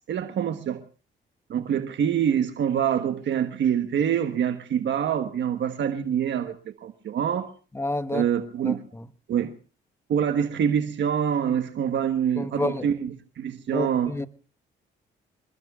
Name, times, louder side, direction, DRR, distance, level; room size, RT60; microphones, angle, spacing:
voice 1, 0.1-0.8 1.5-6.5 6.8-7.5 8.1-8.8 9.3-9.5 10.1-14.1, right 8 dB, 65° right, 1.3 m, -25 dB
voice 2, 7.7-8.3 8.6-8.7 12.4-12.9 13.7-14.3, left 2 dB, 15° left, 1.2 m, -28 dB
27.0 x 20.5 x 2.4 m
cardioid pair, 90°, 20 cm